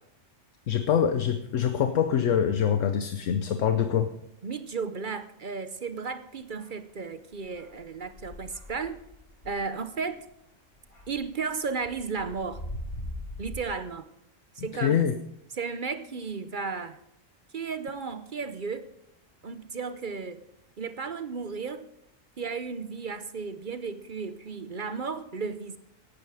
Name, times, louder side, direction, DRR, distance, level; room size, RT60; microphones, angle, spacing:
voice 1, 0.7-4.1 14.8-15.1, left 8 dB, 75° left, 9 dB, 1.1 m, -24 dB
voice 2, 4.4-9.0 9.4-10.2 11.1-12.6 13.4-14.1 14.6-15.1 15.5-17.0 17.5-18.9 19.4-20.4 20.8-21.8 22.4-25.8, right 5 dB, 45° right, 11 dB, 0.8 m, -34 dB
sound 1, 6.6-6.7 7.3-10.3 10.8-13.6, left 1 dB, 50° left, 4.9 m, -41 dB
17.0 x 11.5 x 4.9 m, 0.79 s
omnidirectional pair, 1.3 m